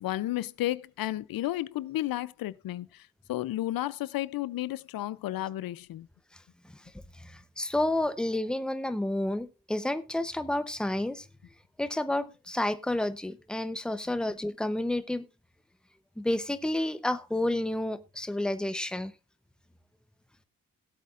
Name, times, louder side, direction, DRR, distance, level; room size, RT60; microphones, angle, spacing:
voice 1, 0.0-6.1, left 14 dB, 80° left, 0.5 m, -32 dB
voice 2, 7.2-11.3 11.8-15.2 16.2-19.1, left 1 dB, ahead, 0.7 m, -30 dB
18.5 x 8.4 x 2.4 m
wide cardioid pair, 125°, 35 cm